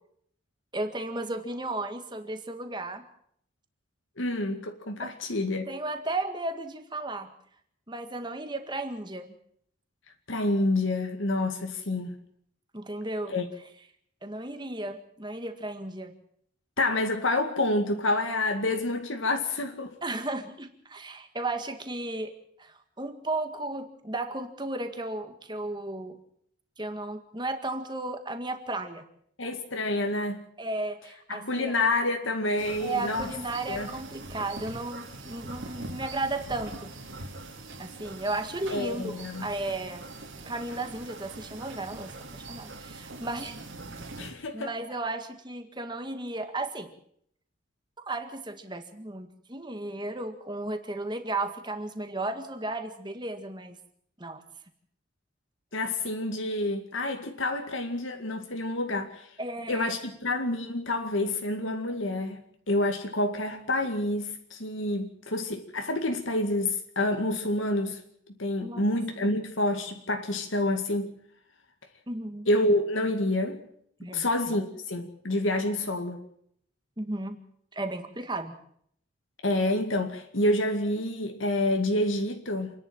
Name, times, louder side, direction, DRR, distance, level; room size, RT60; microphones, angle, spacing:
voice 1, 0.7-3.1 5.0-5.1 5.7-7.3 7.9-9.3 12.7-13.4 14.2-16.1 20.0-26.2 26.8-29.0 30.6-31.7 32.8-36.9 37.8-40.1 40.5-43.6 44.5-46.9 48.0-53.7 54.2-54.4 59.4-59.9 68.6-68.8 69.2-69.3 72.1-72.5 74.0-74.5 77.0-77.4 77.7-78.6, right 2 dB, 20° right, 1.8 m, -34 dB
voice 2, 4.2-5.7 10.3-12.1 13.3-13.5 16.8-19.9 29.4-30.4 31.3-33.3 33.7-33.9 38.7-39.4 44.2-44.7 55.7-59.3 59.7-62.4 62.7-68.0 68.4-71.1 72.5-73.6 74.0-76.2 79.4-82.7, left 1 dB, 75° left, 2.2 m, -28 dB
sound 1, 32.6-44.3, right 2 dB, 70° right, 2.8 m, -42 dB
27.5 x 11.0 x 8.8 m
head